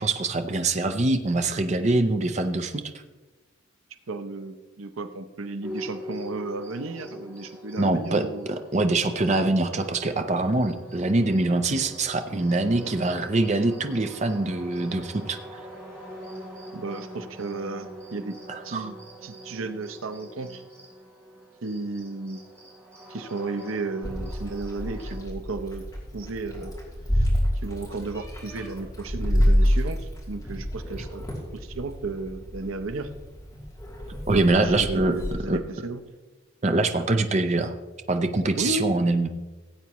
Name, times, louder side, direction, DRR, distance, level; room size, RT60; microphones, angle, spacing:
voice 1, 0.0-2.8 7.8-15.4 18.5-18.9 34.3-35.2 35.5-35.6 36.6-37.7 38.1-39.3, right 2 dB, 35° right, 7 dB, 0.6 m, -24 dB
voice 2, 4.1-8.5 12.8-13.1 16.7-18.4 18.6-18.9 19.2-20.6 21.6-22.4 23.1-25.8 26.1-26.7 27.1-27.3 27.5-31.2 31.5-33.1 34.3-36.0 38.6-38.9, right 3 dB, 85° right, 10 dB, 0.7 m, -33 dB
sound 1, 5.6-25.2, equal, 15° right, 3.8 m, -43 dB
Meow, 24.0-35.3, equal, 15° left, 2.8 m, -28 dB
17.0 x 8.3 x 3.0 m, 1.2 s
head